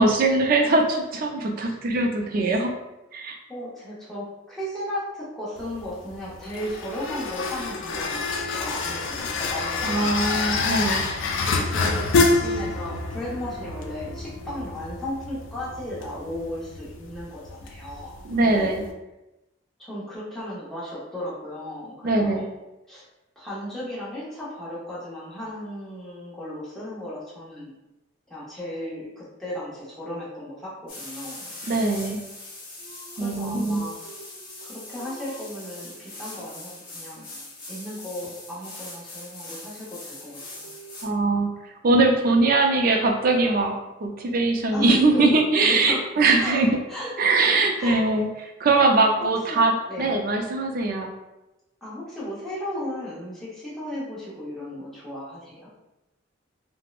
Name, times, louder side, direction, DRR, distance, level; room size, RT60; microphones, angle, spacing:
voice 1, 0.0-2.7 3.1-3.4 9.8-11.0 18.2-18.8 22.0-22.5 31.7-32.2 33.2-33.8 41.0-41.5 41.8-46.8 47.2-48.3 48.6-51.1, right 2 dB, 50° right, 2 dB, 0.4 m, -21 dB
voice 2, 3.5-10.1 11.4-18.7 19.8-22.5 22.9-23.0 23.4-27.7 28.3-31.6 33.2-34.1 34.6-37.3 37.7-40.7 44.7-46.1 46.4-46.6 46.9-47.1 47.8-48.0 49.5-49.6 49.9-50.2 51.8-55.7, left 1 dB, ahead, -10 dB, 0.8 m, -35 dB
sound 1, 5.6-18.9, left 3 dB, 85° left, 0.4 m, -28 dB
sound 2, 30.9-41.1, left 2 dB, 50° left, 0.9 m, -41 dB
3.4 x 2.0 x 2.4 m, 0.97 s
head